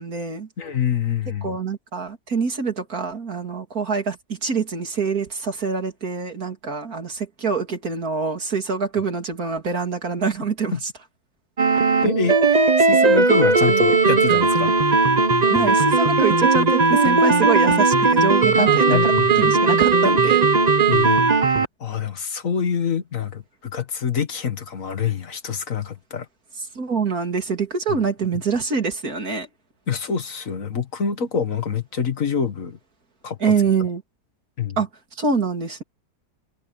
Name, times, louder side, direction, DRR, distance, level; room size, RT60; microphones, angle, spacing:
voice 1, 0.0-0.5 1.4-10.9 15.5-20.5 26.8-29.5 33.4-34.0 34.8-34.9 35.2-35.8, right 5 dB, 55° right, 3.3 m, -25 dB
voice 2, 0.6-1.6 10.7-10.8 12.0-14.7 18.5-19.5 20.9-21.2 21.5-26.3 29.9-32.8 33.2-33.5 34.6-34.8, left 6 dB, 50° left, 1.9 m, -26 dB
sound 1, 11.6-21.7, right 4 dB, 30° right, 0.8 m, -17 dB
omnidirectional pair, 1.9 m